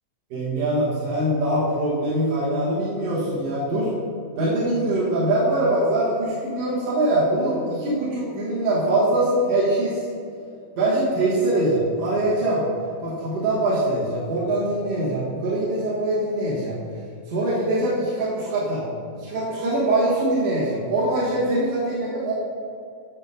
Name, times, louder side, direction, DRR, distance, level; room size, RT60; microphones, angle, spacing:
voice 1, 0.3-3.9 4.4-10.0 10.8-12.7 13.0-16.8 17.3-18.8 19.1-22.3, right 1 dB, 55° right, -9 dB, 2.1 m, -23 dB
11.5 x 5.0 x 2.7 m, 2.4 s
omnidirectional pair, 4.1 m